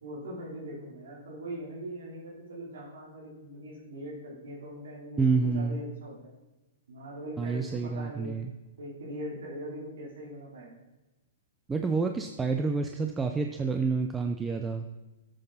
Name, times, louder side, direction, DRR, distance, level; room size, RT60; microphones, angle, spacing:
voice 1, 0.0-6.2 6.9-8.3 8.8-10.8, equal, 80° right, -6 dB, 4.0 m, -41 dB
voice 2, 5.2-5.8 7.4-8.5 11.7-14.9, right 4 dB, 10° right, 4 dB, 0.6 m, -28 dB
13.5 x 7.6 x 4.3 m, 1.1 s
hypercardioid pair, 135°, 0 cm